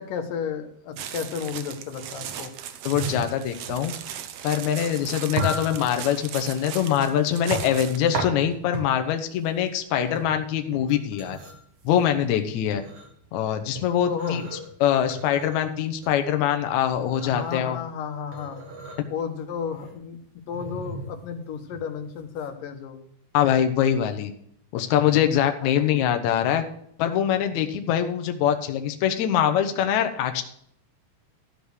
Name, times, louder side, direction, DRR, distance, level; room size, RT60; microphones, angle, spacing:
voice 1, 0.0-2.5 14.1-14.4 17.2-18.7 19.1-20.2 20.5-23.1 25.6-26.2, left 6 dB, 85° left, 6 dB, 2.7 m, -33 dB
sound 1, 1.0-8.1, right 9 dB, 80° right, 1.3 m, -38 dB
voice 2, 2.9-4.0 4.4-11.4 11.8-12.8 13.3-14.4 14.8-17.8 23.3-24.3 24.7-26.6 27.0-30.4, left 9 dB, 70° left, 6 dB, 2.1 m, -23 dB
sound 2, 2.9-22.5, right 2 dB, 50° right, 2.4 m, -36 dB
13.0 x 5.2 x 6.4 m, 0.68 s
omnidirectional pair, 3.8 m